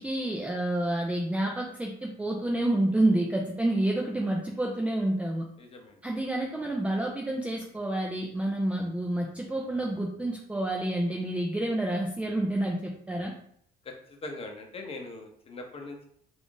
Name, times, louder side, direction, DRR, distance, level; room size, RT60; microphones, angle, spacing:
voice 1, 0.0-5.5 6.0-13.3, right 1 dB, 5° right, 0 dB, 0.5 m, -29 dB
voice 2, 5.6-6.0 13.8-16.1, left 2 dB, 35° left, 3 dB, 0.8 m, -41 dB
3.5 x 2.6 x 3.5 m, 0.66 s
cardioid pair, 110°, 17 cm